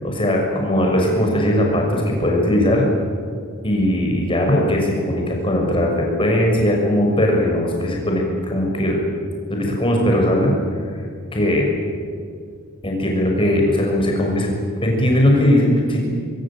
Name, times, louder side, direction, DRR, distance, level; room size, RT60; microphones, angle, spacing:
voice 1, 0.0-2.8 3.6-9.0 9.5-10.5 11.3-11.7 12.8-14.5 14.8-16.0, left 1 dB, 25° left, 0 dB, 6.5 m, -19 dB
24.5 x 22.5 x 9.0 m, 2.1 s
head